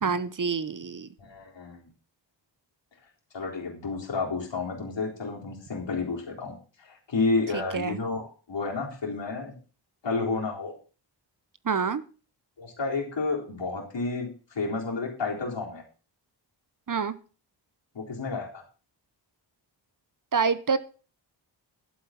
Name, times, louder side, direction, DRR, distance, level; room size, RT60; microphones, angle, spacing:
voice 1, 0.0-1.1 7.7-8.0 11.6-12.0 16.9-17.1 20.3-20.8, right 5 dB, 45° right, 16 dB, 0.8 m, -26 dB
voice 2, 1.2-1.9 3.3-9.5 10.0-10.7 12.6-15.8 17.9-18.6, left 3 dB, 70° left, 0 dB, 3.9 m, -31 dB
11.5 x 8.1 x 5.8 m, 0.37 s
wide cardioid pair, 115°, 45 cm